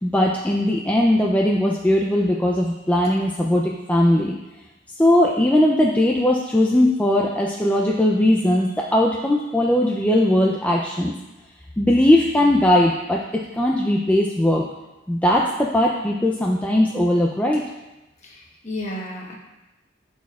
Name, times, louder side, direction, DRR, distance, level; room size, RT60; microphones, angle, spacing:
voice 1, 0.0-4.3 5.0-11.1 11.8-14.6 15.1-17.7, left 1 dB, 10° left, -2 dB, 0.3 m, -19 dB
voice 2, 18.2-19.3, left 1 dB, 35° left, -2 dB, 1.2 m, -33 dB
12.5 x 4.3 x 2.3 m, 1.0 s
head